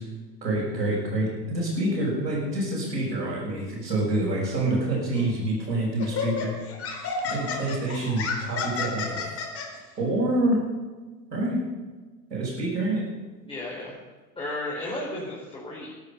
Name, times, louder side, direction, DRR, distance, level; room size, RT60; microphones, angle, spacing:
voice 1, 0.4-6.5 7.3-9.2 10.0-10.6 11.3-11.6 12.3-13.0, right 1 dB, 80° right, -8 dB, 6.7 m, -27 dB
Laughter, 5.2-5.4 6.0-9.7, left 5 dB, 30° left, 4.6 m, -30 dB
voice 2, 13.4-13.9 14.4-15.9, left 1 dB, 10° left, -6 dB, 5.3 m, -34 dB
20.5 x 12.0 x 5.6 m, 1.3 s
figure-of-eight pair, 85°, 49 cm